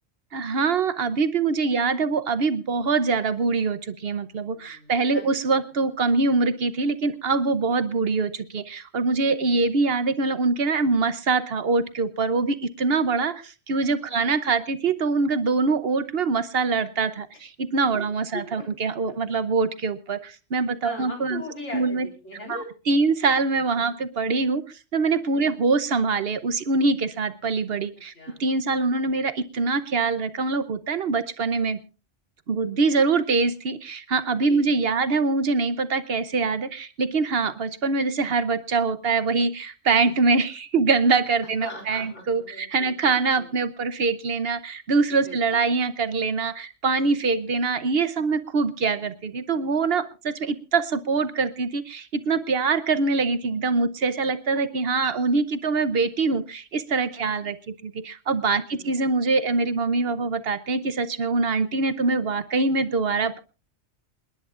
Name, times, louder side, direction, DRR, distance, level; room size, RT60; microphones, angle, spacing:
voice 1, 0.3-3.8 4.0-4.4 4.9-8.3 8.9-12.5 12.8-13.3 13.7-17.1 17.7-20.2 20.5-21.4 21.7-22.1 22.5-22.6 22.9-24.6 24.9-27.9 28.4-29.3 29.6-31.8 32.5-33.8 34.1-36.7 37.0-39.5 39.9-42.4 42.7-44.6 44.9-46.5 46.8-49.0 49.3-50.0 50.7-50.8 51.1-51.8 52.3-56.4 56.9-57.5 58.3-58.6 58.9-63.4, right 4 dB, 60° right, 12 dB, 1.1 m, -23 dB
voice 2, 1.5-2.0 4.5-5.2 7.8-8.0 9.5-9.6 14.1-14.2 17.9-18.1 18.3-18.9 20.8-22.7 23.7-23.9 25.3-25.5 28.1-28.4 34.5-34.6 41.6-43.5 45.2-45.6 57.1-57.4 58.7-59.0, left 1 dB, 80° left, 1 dB, 4.5 m, -40 dB
28.0 x 10.5 x 2.5 m, 0.32 s
omnidirectional pair, 1.2 m